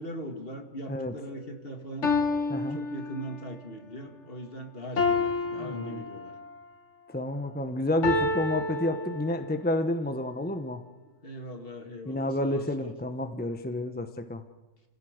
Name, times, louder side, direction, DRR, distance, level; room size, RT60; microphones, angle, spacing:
voice 1, 0.0-2.1 2.7-6.3 11.2-12.9, equal, 50° left, 5 dB, 2.3 m, -40 dB
sound 1, 1.3-1.4 2.0-3.6 5.0-6.6 8.0-9.6, left 3 dB, 70° left, 2.2 m, -29 dB
voice 2, 5.6-6.0 7.1-10.8 12.0-14.4, left 1 dB, 10° left, 8 dB, 1.0 m, -30 dB
30.0 x 16.0 x 6.6 m, 1.2 s
omnidirectional pair, 1.3 m